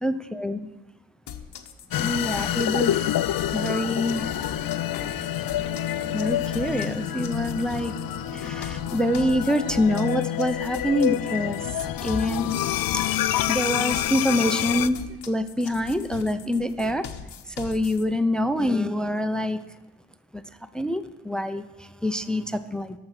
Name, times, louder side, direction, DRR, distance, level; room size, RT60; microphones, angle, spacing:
voice 1, 0.0-0.7 2.0-3.1 3.5-4.4 6.1-7.9 8.3-12.6 12.9-13.0 13.5-17.1 17.5-19.6 20.3-20.4 20.7-23.0, left 1 dB, ahead, 11 dB, 0.7 m, -26 dB
sound 1, 1.3-18.0, left 8 dB, 80° left, 1.1 m, -41 dB
sound 2, 1.9-14.9, left 12 dB, 60° left, 0.5 m, -27 dB
sound 3, 3.6-10.0, right 2 dB, 20° right, 0.9 m, -43 dB
13.0 x 6.1 x 5.9 m, 1.1 s
supercardioid pair, 50°, 40 cm